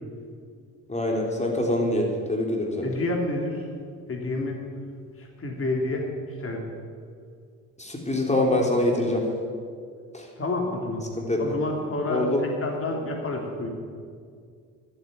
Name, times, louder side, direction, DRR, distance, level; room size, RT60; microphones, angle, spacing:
voice 1, 0.9-2.9 7.8-9.3 10.1-10.3 11.2-11.5 12.1-12.4, left 1 dB, 15° left, 0 dB, 3.4 m, -25 dB
voice 2, 2.8-3.6 4.1-4.6 5.2-6.1 6.4-6.6 10.4-11.0 11.4-12.3 12.6-13.7, left 2 dB, 30° left, 0 dB, 3.1 m, -29 dB
12.0 x 8.4 x 9.0 m, 2.2 s
hypercardioid pair, 50°, 41 cm